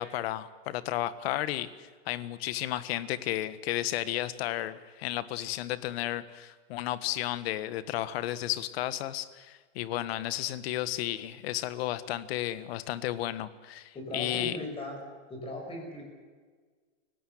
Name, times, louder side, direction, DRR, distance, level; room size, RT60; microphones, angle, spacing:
voice 1, 0.0-14.6, left 14 dB, 50° left, 15 dB, 1.5 m, -33 dB
voice 2, 13.9-15.0 15.3-16.0, left 1 dB, 15° left, 2 dB, 6.2 m, -38 dB
29.0 x 17.5 x 8.0 m, 1.5 s
supercardioid pair, 165°, 39 cm